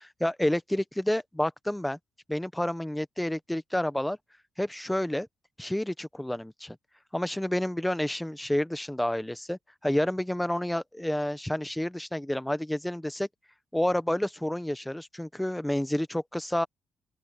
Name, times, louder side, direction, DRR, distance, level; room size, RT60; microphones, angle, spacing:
voice 1, 0.0-2.0 2.3-4.2 4.6-5.3 5.6-6.8 7.1-13.3 13.7-16.7, left 1 dB, 5° left, 1.0 m, -29 dB
open air
cardioid pair, 90°, 0 cm